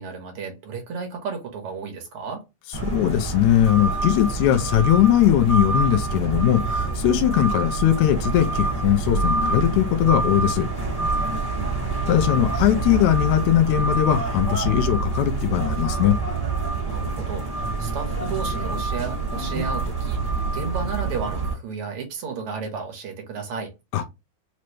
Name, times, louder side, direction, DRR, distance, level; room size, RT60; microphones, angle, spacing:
voice 1, 0.0-2.4 11.2-11.8 16.8-23.7, right 5 dB, 60° right, 1.6 m, -33 dB
sound 1, 2.7-21.5, right 3 dB, 10° right, 1.1 m, -26 dB
voice 2, 2.8-10.7 12.1-16.2 23.9-24.1, left 12 dB, 85° left, 2.0 m, -20 dB
5.1 x 2.2 x 3.0 m
omnidirectional pair, 3.3 m